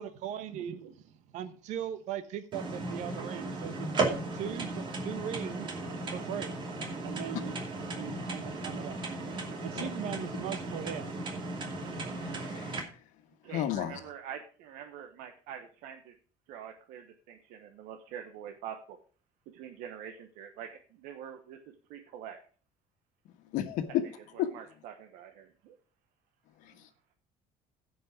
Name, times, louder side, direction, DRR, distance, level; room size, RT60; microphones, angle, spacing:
voice 1, 0.0-5.8 6.1-6.6 7.0-7.6 7.9-9.0 9.6-11.1, right 10 dB, 65° right, 1.2 m, -39 dB
sound 1, 2.5-12.8, right 2 dB, 35° right, 2.6 m, -36 dB
voice 2, 12.2-12.8 13.5-14.0 23.5-24.0 24.4-24.5 26.6-26.7, left 12 dB, 70° left, 1.5 m, -32 dB
voice 3, 13.4-16.1 16.5-19.0 19.5-21.6 21.9-22.4 24.3-25.8, right 9 dB, 80° right, 1.1 m, -45 dB
15.5 x 5.5 x 4.9 m
cardioid pair, 150°, 13 cm